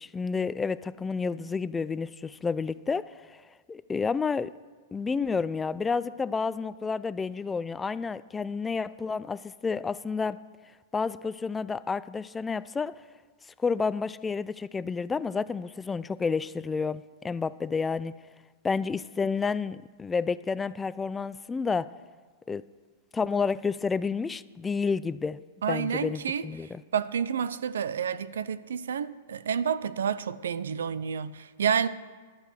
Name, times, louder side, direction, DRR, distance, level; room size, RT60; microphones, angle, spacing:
voice 1, 0.0-3.4 3.7-4.5 4.9-10.4 10.9-13.0 13.6-18.1 18.6-21.9 22.5-22.6 23.1-25.4 25.7-26.8, left 5 dB, 15° left, 0.3 m, -30 dB
voice 2, 25.6-26.5 26.9-31.9, right 7 dB, 85° right, 0.5 m, -29 dB
12.0 x 8.0 x 6.5 m
hypercardioid pair, 120°, 0 cm